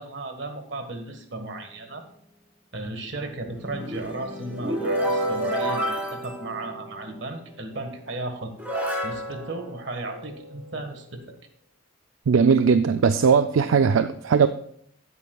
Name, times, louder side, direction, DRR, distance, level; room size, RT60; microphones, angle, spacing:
voice 1, 0.0-2.0 2.7-8.5 9.0-11.2, right 2 dB, 65° right, 6 dB, 1.5 m, -35 dB
sound 1, 3.5-7.2 8.0-8.1 8.6-10.5, right 1 dB, 10° right, 2.3 m, -29 dB
voice 2, 12.3-14.5, right 6 dB, 80° right, 10 dB, 0.4 m, -19 dB
16.0 x 8.4 x 2.3 m, 0.65 s
head